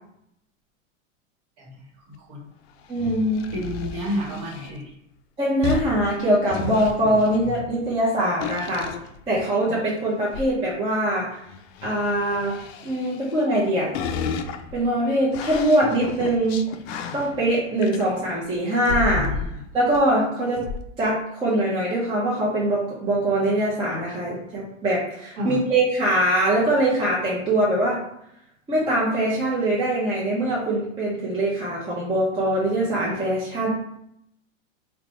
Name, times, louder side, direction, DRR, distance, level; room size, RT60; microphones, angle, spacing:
voice 1, 2.1-2.5 3.5-4.9 19.0-19.6 25.4-25.6, equal, 40° right, -2 dB, 1.2 m, -31 dB
sound 1, 2.8-4.8 5.6-8.0 8.4-9.7 10.2-10.5 11.5-13.6 13.9-18.4 18.9-19.6 19.9-20.0 20.5-20.8, left 5 dB, 55° left, 0.4 m, -33 dB
voice 2, 2.9-3.5 5.4-8.9 9.3-11.4 11.8-12.6 12.8-13.9 14.7-16.7 17.1-19.4 19.7-20.6 21.0-28.0 28.7-33.7, right 1 dB, 15° right, -6 dB, 0.6 m, -22 dB
2.6 x 2.2 x 4.0 m, 0.76 s
hypercardioid pair, 125°, 38 cm